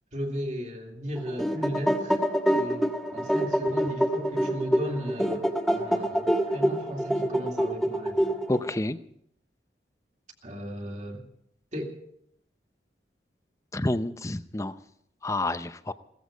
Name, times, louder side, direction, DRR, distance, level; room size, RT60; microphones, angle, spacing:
voice 1, 0.1-8.4 10.4-11.2 11.7-11.9, equal, 40° right, 2 dB, 2.5 m, -36 dB
sound 1, 1.2-8.8, equal, ahead, 1.3 m, -26 dB
voice 2, 8.5-9.0 13.7-14.7 15.2-15.9, left 2 dB, 15° left, 12 dB, 0.6 m, -28 dB
17.0 x 14.5 x 5.1 m, 0.71 s
head